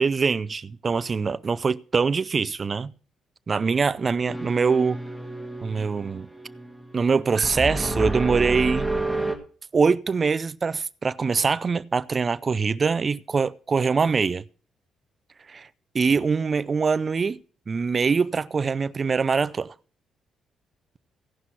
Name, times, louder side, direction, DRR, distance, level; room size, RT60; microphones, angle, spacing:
voice 1, 0.0-2.9 3.5-5.0 5.6-6.3 6.9-8.9 9.7-14.4 15.5-15.7 15.9-17.4 17.7-19.7, right 5 dB, 35° right, 0.5 m, -23 dB
sound 1, 4.3-9.4, right 1 dB, 5° right, 1.9 m, -30 dB
16.5 x 5.7 x 6.2 m
cardioid pair, 90°, 0 cm